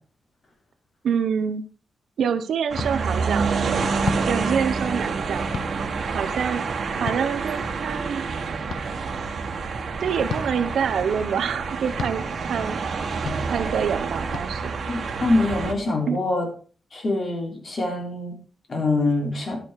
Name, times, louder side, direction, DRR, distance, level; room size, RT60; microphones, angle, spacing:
voice 1, 1.0-1.6 2.2-3.5 4.3-5.5 6.1-6.6 7.0-8.2 10.0-12.8 13.5-14.8 16.1-16.2, right 7 dB, 80° right, 11 dB, 0.9 m, -26 dB
sound 1, 2.7-15.7, right 4 dB, 60° right, 1.5 m, -28 dB
sound 2, 2.8-2.9 4.0-4.3 5.5-5.7 7.1-7.2 8.7-8.8 10.3-10.5 12.0-12.2 13.3-13.4 14.3-14.5, left 6 dB, 75° left, 1.1 m, -30 dB
voice 2, 14.9-16.5 16.9-18.3 18.7-19.6, left 2 dB, 50° left, 2 dB, 3.5 m, -24 dB
12.0 x 6.2 x 4.8 m, 0.40 s
cardioid pair, 100°, 0 cm